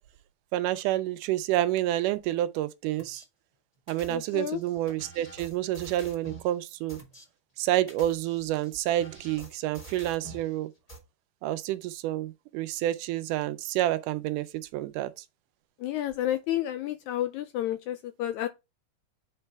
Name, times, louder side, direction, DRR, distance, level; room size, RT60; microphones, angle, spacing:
voice 1, 0.5-3.2 3.9-7.0 7.6-10.7 11.4-15.1, right 14 dB, 80° right, 2.0 m, -29 dB
sound 1, 3.0-3.3 3.9-6.5 6.9-7.2 7.8-10.5 10.9-11.0, right 2 dB, 20° left, 1.1 m, -47 dB
voice 2, 4.1-4.6 15.8-18.5, left 12 dB, 80° left, 1.7 m, -30 dB
8.9 x 4.4 x 3.4 m
omnidirectional pair, 3.8 m